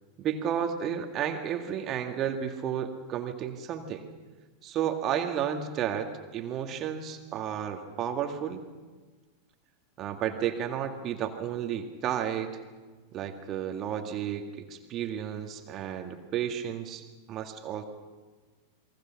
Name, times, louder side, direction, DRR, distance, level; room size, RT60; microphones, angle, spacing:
voice 1, 0.2-4.1 4.6-8.6 10.0-12.6 13.1-17.8, right 9 dB, 35° right, 5 dB, 2.1 m, -32 dB
29.0 x 23.0 x 5.9 m, 1.3 s
figure-of-eight pair, 90°, 0 cm